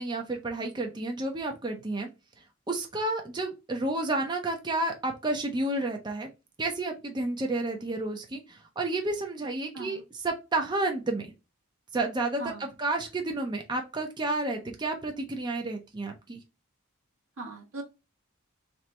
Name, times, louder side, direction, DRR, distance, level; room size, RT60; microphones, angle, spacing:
voice 1, 0.0-2.1 2.7-6.3 6.6-11.3 11.9-16.4, right 2 dB, 20° right, 3 dB, 0.5 m, -31 dB
voice 2, 12.4-12.7 17.4-17.8, right 2 dB, 60° right, -4 dB, 1.3 m, -39 dB
3.1 x 2.9 x 3.2 m, 0.27 s
head